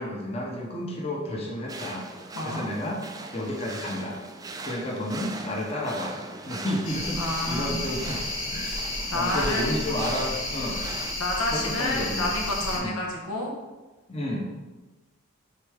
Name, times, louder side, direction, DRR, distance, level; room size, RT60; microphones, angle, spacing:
voice 1, 0.0-2.1 2.4-3.0 3.3-4.2 4.6-6.1 6.5-8.2 8.5-8.8 9.1-10.8 11.5-12.2 12.7-12.9 14.1-14.5, left 1 dB, 30° left, -1 dB, 0.9 m, -31 dB
sound 1, 1.7-11.1, right 3 dB, 15° right, 0.3 m, -40 dB
voice 2, 2.3-2.7 7.2-7.8 9.1-9.8 11.2-13.5, left 1 dB, 90° left, 0 dB, 1.2 m, -29 dB
sound 2, 6.8-12.8, left 2 dB, 60° left, 1.8 m, -32 dB
6.7 x 4.5 x 3.5 m, 1.2 s
head